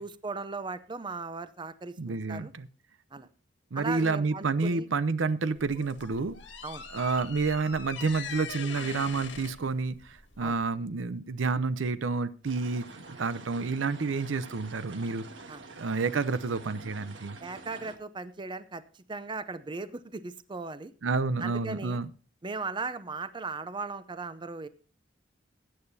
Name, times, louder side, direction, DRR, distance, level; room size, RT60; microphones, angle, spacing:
voice 1, 0.0-2.5 3.1-3.3 3.7-4.9 6.6-6.9 10.4-10.6 15.5-15.6 17.4-20.9 21.4-22.0 22.4-24.7, right 4 dB, 25° right, 13 dB, 0.6 m, -37 dB
voice 2, 2.0-2.7 3.7-6.4 6.9-15.3 15.8-17.4 21.0-22.1, right 4 dB, 85° right, 15 dB, 0.6 m, -29 dB
sound 1, 5.5-10.7, left 6 dB, 75° left, 1.7 m, -42 dB
sound 2, 12.4-18.0, right 3 dB, 70° right, 1.6 m, -47 dB
20.0 x 8.9 x 2.7 m, 0.39 s
head